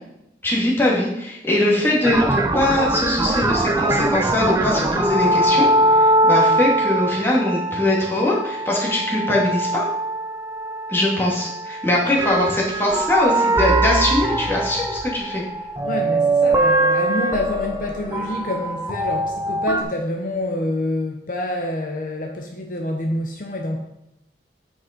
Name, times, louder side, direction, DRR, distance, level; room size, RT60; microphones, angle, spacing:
voice 1, 0.4-9.9 10.9-15.4, left 1 dB, 15° left, -4 dB, 2.2 m, -21 dB
sound 1, 2.0-19.8, right 2 dB, 15° right, 0.6 m, -22 dB
voice 2, 15.8-23.8, left 1 dB, 50° left, 2 dB, 0.9 m, -27 dB
9.6 x 5.4 x 5.1 m, 0.86 s
head